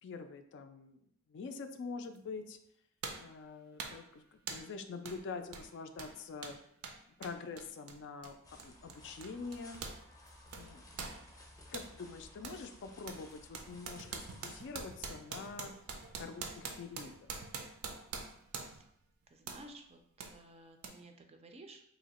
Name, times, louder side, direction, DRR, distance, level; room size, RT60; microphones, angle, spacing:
voice 1, 0.0-2.6 3.2-6.6 7.2-9.8 10.5-10.8 11.1-11.3 11.7-15.7 16.2-17.4, left 4 dB, 55° left, 8 dB, 0.3 m, -45 dB
sound 1, 2.2-2.3 3.0-3.3 3.8-4.1 4.5-4.7 5.0-5.2 5.5-10.0 10.3-11.9 12.4-12.6 13.1-18.9 19.5-19.7 20.2-20.3 20.8-20.9, right 5 dB, 80° right, 0.5 m, -45 dB
sound 2, 8.4-14.7, left 1 dB, 15° left, 0.6 m, -57 dB
voice 2, 19.3-21.8, right 2 dB, 30° right, 5 dB, 0.4 m, -54 dB
2.9 x 2.7 x 4.1 m, 0.71 s
head